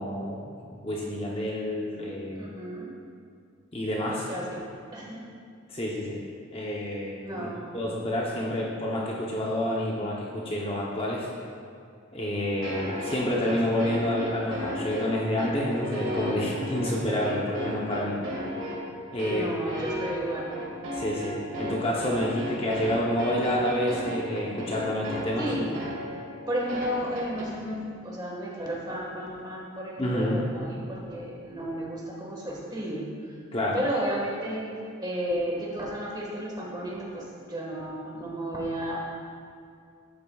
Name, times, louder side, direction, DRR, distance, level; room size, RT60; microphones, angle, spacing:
voice 1, 0.0-2.6 3.7-4.2 5.7-6.2 6.5-7.5 7.7-11.3 12.1-18.2 19.1-19.5 20.9-25.5 30.0-30.4 33.5-33.8, left 1 dB, 25° left, -3 dB, 0.8 m, -29 dB
voice 2, 2.3-2.9 4.1-4.5 4.9-5.2 7.2-7.7 19.3-20.5 25.4-25.7 26.5-33.4 33.7-34.6 35.0-39.0, right 1 dB, 20° right, -3 dB, 1.5 m, -33 dB
sound 1, 12.6-27.5, equal, 65° right, 2.2 m, -34 dB
11.5 x 8.6 x 2.3 m, 2.3 s
head